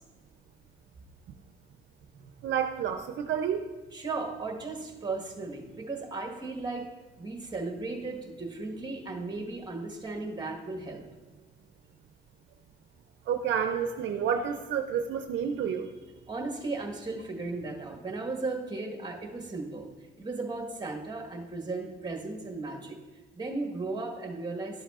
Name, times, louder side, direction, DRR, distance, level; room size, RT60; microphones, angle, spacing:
voice 1, 2.4-3.6 13.3-15.9, right 8 dB, 70° right, 6 dB, 0.5 m, -29 dB
voice 2, 3.9-6.8 7.2-11.0 16.3-19.9 20.2-23.0 23.3-24.8, right 3 dB, 20° right, 2 dB, 1.4 m, -36 dB
12.0 x 7.2 x 2.4 m, 1.3 s
cardioid pair, 90°, 20 cm